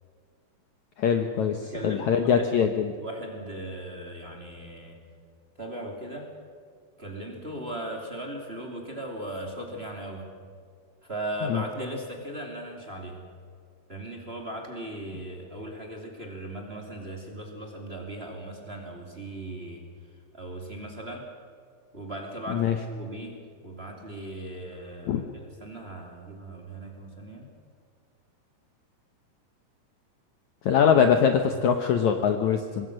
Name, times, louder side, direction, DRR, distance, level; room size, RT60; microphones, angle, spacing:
voice 1, 1.0-3.0 11.4-11.6 22.5-22.8 25.1-25.2 30.6-32.9, left 7 dB, 65° left, 6 dB, 2.0 m, -23 dB
voice 2, 1.6-2.7 3.0-5.0 5.6-6.3 7.0-10.3 11.0-13.2 13.9-19.9 20.3-21.3 21.9-27.5, right 1 dB, 20° right, 1 dB, 2.5 m, -38 dB
25.0 x 20.5 x 6.5 m, 2.1 s
omnidirectional pair, 4.4 m